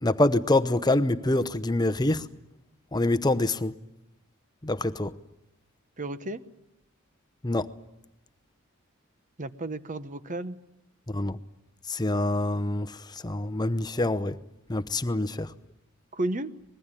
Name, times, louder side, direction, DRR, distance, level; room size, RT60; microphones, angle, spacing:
voice 1, 0.0-2.3 2.9-3.7 4.6-5.1 7.4-7.7 11.1-11.4 11.9-14.3 14.7-15.5, left 2 dB, 20° left, 0.8 m, -25 dB
voice 2, 6.0-6.4 9.4-10.6 16.1-16.5, right 2 dB, 40° right, 1.1 m, -32 dB
25.5 x 20.5 x 9.1 m
head